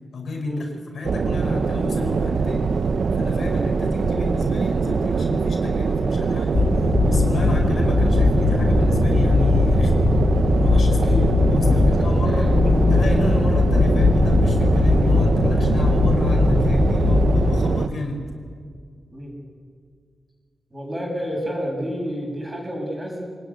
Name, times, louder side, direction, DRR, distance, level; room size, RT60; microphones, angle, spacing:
voice 1, 0.1-0.7 0.9-2.7 3.2-6.8 7.1-10.1 10.6-12.5 12.9-18.2, left 2 dB, 70° left, 2 dB, 5.3 m, -31 dB
sound 1, 1.0-17.9, right 5 dB, 55° right, 0.9 m, -23 dB
sound 2, 6.5-17.5, left 3 dB, 45° left, 3.3 m, -19 dB
voice 2, 11.8-13.1 19.1-19.4 20.7-23.2, equal, 20° right, -1 dB, 7.1 m, -30 dB
26.5 x 19.5 x 9.8 m, 2.1 s
wide cardioid pair, 130°, 0 cm